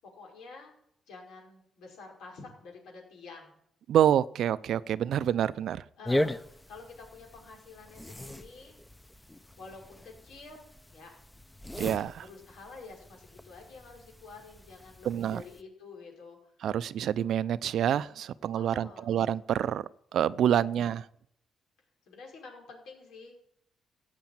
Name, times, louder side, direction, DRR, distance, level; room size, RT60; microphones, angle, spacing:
voice 1, 0.0-0.7 1.1-3.6 6.0-8.7 9.6-10.6 10.9-11.2 12.2-16.4 18.5-19.1 22.1-23.4, left 4 dB, 80° left, 0 dB, 5.5 m, -49 dB
voice 2, 3.9-5.8 11.8-12.2 15.1-15.4 16.6-19.8 20.1-21.0, right 10 dB, 70° right, 17 dB, 0.5 m, -27 dB
sound 1, 6.0-15.6, left 1 dB, 10° left, 0.8 m, -38 dB
15.5 x 8.3 x 8.9 m, 0.73 s
cardioid pair, 90°, 0 cm